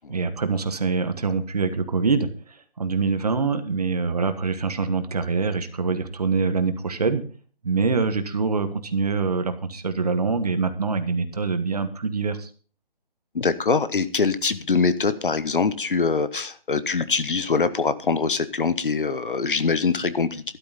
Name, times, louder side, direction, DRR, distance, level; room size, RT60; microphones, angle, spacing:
voice 1, 0.0-7.2 7.6-12.5, right 4 dB, 40° right, 9 dB, 1.4 m, -25 dB
voice 2, 13.3-20.4, left 4 dB, 60° left, 14 dB, 1.1 m, -23 dB
12.5 x 12.0 x 4.2 m, 0.40 s
figure-of-eight pair, 170°, 30 cm